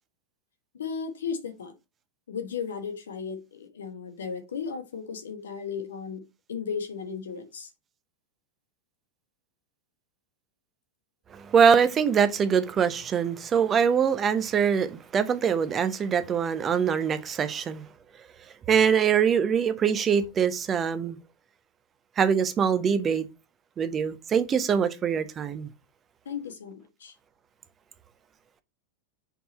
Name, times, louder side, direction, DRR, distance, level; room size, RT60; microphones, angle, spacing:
voice 1, 0.7-1.7 2.3-7.7 26.2-27.1, left 6 dB, 65° left, 1.4 m, -35 dB
voice 2, 11.3-17.9 18.7-21.2 22.2-23.2 23.8-25.7, right 7 dB, 25° right, 0.7 m, -23 dB
5.5 x 4.3 x 4.2 m
figure-of-eight pair, 90°, 0 cm